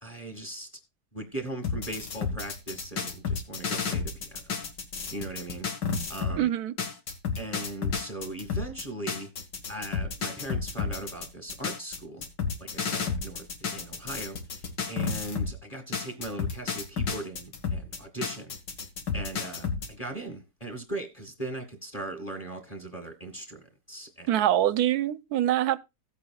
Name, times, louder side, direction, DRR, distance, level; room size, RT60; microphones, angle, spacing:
voice 1, 0.0-0.7 1.1-4.0 4.3-4.4 5.1-5.7 6.1-6.5 7.4-9.3 9.7-12.2 12.6-13.5 13.7-14.4 14.9-18.5 19.1-23.6 23.9-24.3, right 2 dB, 20° left, 2.0 m, -38 dB
sound 1, 1.6-6.4 6.8-15.6 15.9-19.9, left 5 dB, 90° left, 2.4 m, -32 dB
voice 2, 6.4-6.8 24.3-25.8, right 12 dB, 70° right, 1.1 m, -24 dB
17.0 x 8.3 x 2.3 m
omnidirectional pair, 1.9 m